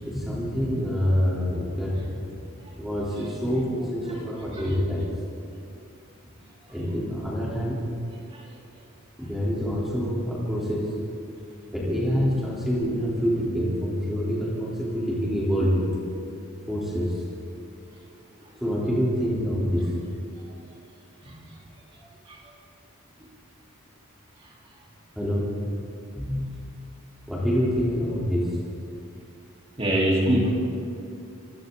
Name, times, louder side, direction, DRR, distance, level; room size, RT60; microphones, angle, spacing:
voice 1, 0.0-2.0 2.8-5.1 6.7-7.8 9.2-10.9 11.7-15.9 16.7-17.2 18.6-19.9 25.2-25.5 26.1-26.6 27.3-28.5, equal, ahead, -7 dB, 3.8 m, -26 dB
voice 2, 29.8-30.6, right 1 dB, 25° right, -3 dB, 3.9 m, -23 dB
27.5 x 25.0 x 4.0 m, 2.6 s
head